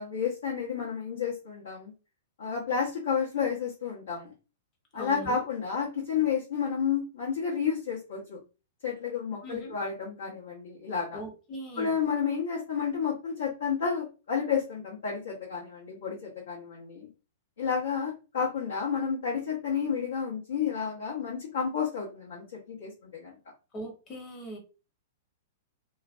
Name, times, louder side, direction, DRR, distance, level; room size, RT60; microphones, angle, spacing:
voice 1, 0.0-1.9 2.4-4.3 4.9-8.4 8.8-11.2 11.8-17.1 17.6-23.3, left 6 dB, 70° left, -5 dB, 1.0 m, -31 dB
voice 2, 4.9-5.4 9.4-9.8 11.1-12.0 23.7-24.6, right 1 dB, 30° left, 1 dB, 1.1 m, -40 dB
2.4 x 2.2 x 2.5 m, 0.32 s
hypercardioid pair, 110°, 0 cm